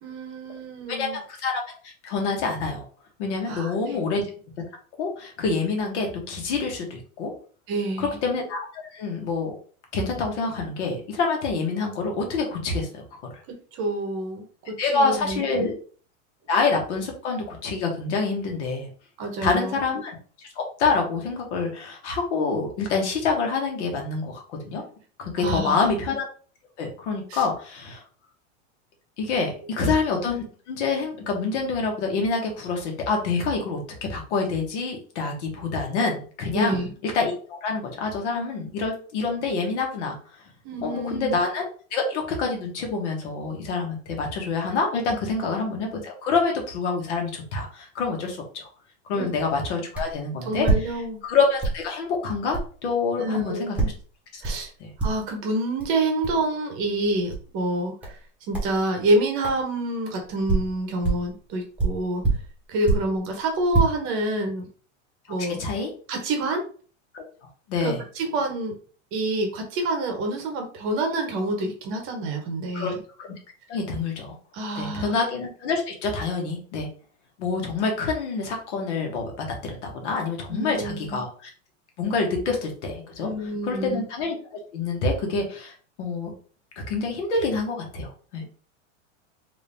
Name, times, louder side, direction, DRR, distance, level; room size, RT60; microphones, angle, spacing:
voice 1, 0.0-1.2 3.5-4.0 7.7-8.2 13.5-15.7 19.2-19.8 25.4-25.9 27.3-27.5 36.5-36.9 40.6-41.4 49.2-49.3 50.4-51.2 53.2-53.7 54.4-54.7 55.0-62.2 62.7-64.7 65.3-65.6 66.1-66.6 67.8-68.7 69.1-73.0 74.5-75.2 80.5-81.2 83.2-84.0, right 1 dB, 35° right, 3 dB, 0.9 m, -27 dB
voice 2, 0.9-2.9 3.2-4.2 5.0-7.3 8.0-9.5 9.9-13.0 14.8-15.7 16.5-18.9 19.4-20.2 20.5-24.8 25.2-26.2 26.8-28.0 29.2-33.8 34.1-40.1 40.8-41.7 41.9-48.7 49.1-50.7 51.2-53.9 54.3-54.4 54.8-54.9 65.3-65.9 67.1-67.2 67.7-68.0 72.7-72.9 73.2-73.3 73.7-74.4 74.8-76.9 77.4-79.3 79.6-81.5 82.0-84.4 84.7-86.3 86.9-88.5, left 4 dB, 65° left, 1 dB, 1.5 m, -27 dB
sound 1, 49.9-50.2 50.6-51.3 51.6-51.9 52.5-52.7 53.8-54.0 54.4-54.7 55.0-55.4 55.8-55.9 56.2-56.4 57.3-57.5 58.0-58.2 58.5-58.8 59.4-59.6 60.2-61.3 61.8-63.2 63.5-63.8, right 3 dB, 5° right, 1.1 m, -25 dB
3.8 x 2.7 x 3.4 m, 0.42 s
supercardioid pair, 155°, 37 cm